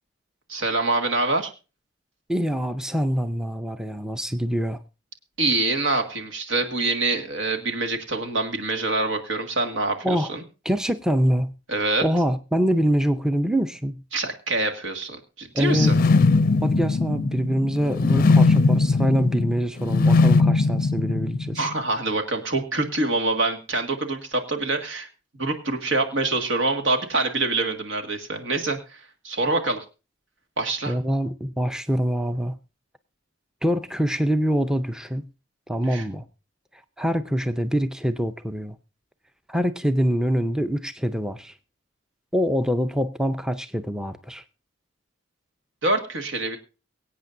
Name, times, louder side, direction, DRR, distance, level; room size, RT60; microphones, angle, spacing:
voice 1, 0.5-1.5 5.4-10.4 11.7-12.0 14.1-16.0 21.6-25.1 25.4-29.8 30.6-31.0 35.8-36.0 45.8-46.6, right 2 dB, 80° right, 1.9 m, -25 dB
voice 2, 2.3-4.8 10.0-10.3 10.6-11.5 12.0-14.0 15.5-15.9 16.6-21.6 30.9-32.6 33.6-35.3 35.7-36.2 37.0-38.8 39.5-41.5 42.3-44.4, equal, 5° right, 0.5 m, -24 dB
sound 1, 15.7-21.7, left 3 dB, 45° left, 0.5 m, -20 dB
23.5 x 8.6 x 2.6 m
head